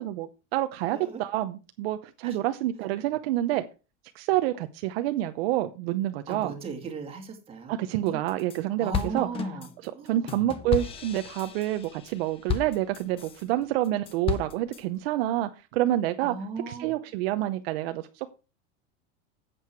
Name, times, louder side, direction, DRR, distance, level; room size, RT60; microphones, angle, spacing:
voice 1, 0.0-3.6 4.1-6.5 7.7-9.3 9.8-16.3 16.7-18.3, right 14 dB, 55° right, 0.8 m, -28 dB
voice 2, 0.9-1.2 2.2-2.4 6.3-8.2 8.8-9.7 9.9-10.3 16.2-16.9, right 4 dB, 15° right, 2.1 m, -37 dB
sound 1, 8.1-8.6 8.9-13.4 13.8-14.8, left 8 dB, 15° left, 0.6 m, -33 dB
10.5 x 7.9 x 4.5 m
supercardioid pair, 165°, 35 cm